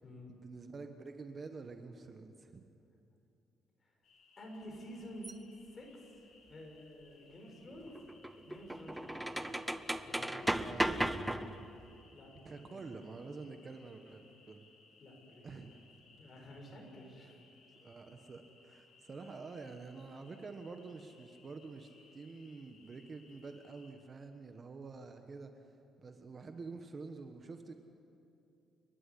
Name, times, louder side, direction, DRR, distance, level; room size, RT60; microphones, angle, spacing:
voice 1, 0.3-2.7 10.5-10.9 12.4-14.6 15.4-15.7 17.8-25.7 26.0-27.7, right 4 dB, 30° right, 6 dB, 1.3 m, -48 dB
sound 1, 4.0-23.9, left 4 dB, 60° left, 6.0 m, -65 dB
voice 2, 4.4-5.3 5.7-8.0 8.4-9.5 10.1-11.2 12.1-13.1 15.0-15.8 16.2-17.4 24.8-24.9, equal, 30° left, 1 dB, 6.5 m, -51 dB
sound 2, 5.2-5.3 7.7-11.8, right 1 dB, 5° right, 0.8 m, -36 dB
29.0 x 12.5 x 9.9 m, 2.7 s
cardioid pair, 120°, 0 cm